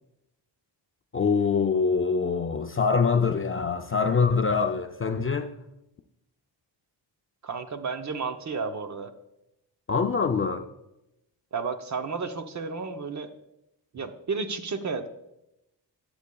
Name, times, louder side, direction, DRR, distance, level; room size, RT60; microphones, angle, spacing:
voice 1, 1.1-5.5 9.9-10.7, left 5 dB, 30° left, 0.4 m, -24 dB
voice 2, 7.4-9.1 11.5-13.3 13.9-15.1, right 4 dB, 40° right, 0.7 m, -32 dB
11.5 x 8.0 x 2.3 m
wide cardioid pair, 125°, 44 cm